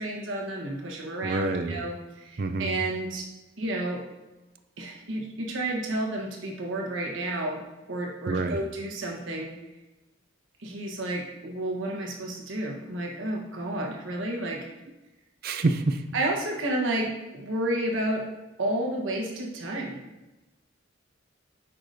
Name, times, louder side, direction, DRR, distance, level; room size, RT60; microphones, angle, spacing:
voice 1, 0.0-3.3 3.6-4.0 4.8-9.6 10.6-14.7 16.1-18.3 18.6-20.0, right 1 dB, 75° right, 0 dB, 1.2 m, -31 dB
voice 2, 1.2-1.8 2.4-2.8 8.3-8.6 15.4-16.0, right 3 dB, 50° right, 8 dB, 0.4 m, -27 dB
8.3 x 4.9 x 2.7 m, 1.1 s
head